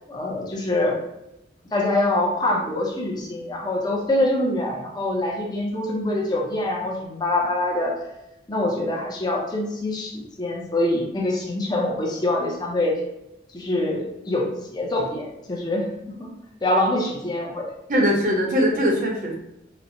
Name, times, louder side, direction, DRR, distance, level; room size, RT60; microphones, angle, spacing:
voice 1, 0.1-1.0 1.7-7.9 8.5-13.0 13.5-15.9 16.2-16.3 16.6-17.7, left 1 dB, 25° left, -2 dB, 0.6 m, -24 dB
voice 2, 17.9-19.3, equal, 50° right, 0 dB, 0.7 m, -21 dB
4.1 x 2.1 x 2.6 m, 0.89 s
head